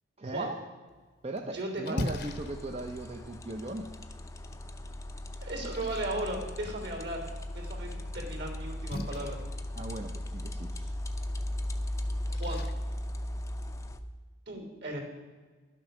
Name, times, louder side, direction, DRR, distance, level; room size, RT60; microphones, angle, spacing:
voice 1, 0.2-0.6 1.2-3.9 9.8-10.9, right 2 dB, 30° right, 4 dB, 0.6 m, -38 dB
Splash splatter, 0.9-13.9, left 1 dB, 55° left, 0.9 m, -44 dB
voice 2, 1.5-2.0 5.4-7.2 7.5-9.4 12.3-12.6 14.5-15.0, right 1 dB, 60° right, 3 dB, 3.3 m, -36 dB
sound 1, 2.0-14.0, left 1 dB, 15° left, 0.6 m, -37 dB
11.5 x 7.6 x 6.4 m, 1.4 s
head